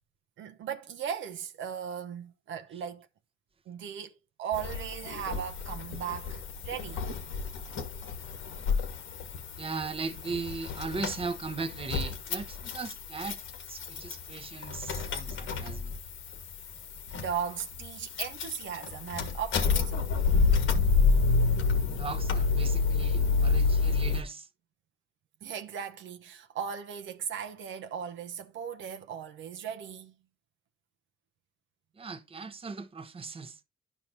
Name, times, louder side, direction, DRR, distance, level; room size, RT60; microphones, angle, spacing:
voice 1, 0.4-3.1 3.7-4.1 4.4-7.1 17.2-20.1 25.4-30.1, right 8 dB, 75° right, 0.9 m, -37 dB
sound 1, 4.5-24.2, left 4 dB, 85° left, 1.5 m, -29 dB
voice 2, 9.6-13.4 13.7-15.9 21.9-24.5 32.0-33.6, right 4 dB, 30° right, 0.9 m, -38 dB
11.5 x 5.4 x 2.9 m
cardioid pair, 90°, 20 cm